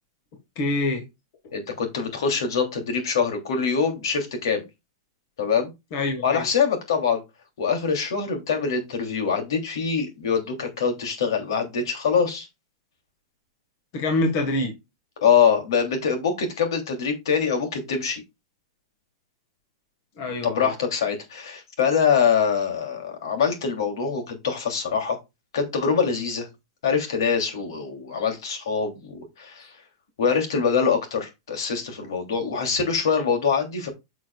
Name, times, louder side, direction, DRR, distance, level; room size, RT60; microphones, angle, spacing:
voice 1, 0.5-1.0 5.9-6.4 13.9-14.7 20.2-20.7, left 2 dB, 35° left, 1.6 m, -25 dB
voice 2, 1.5-4.6 5.4-5.7 6.2-7.2 7.6-12.5 15.2-18.2 20.4-25.2 25.5-26.5 26.8-29.7 30.2-33.9, left 6 dB, 75° left, 3.0 m, -24 dB
10.0 x 6.2 x 2.4 m
supercardioid pair, 175°, 2 cm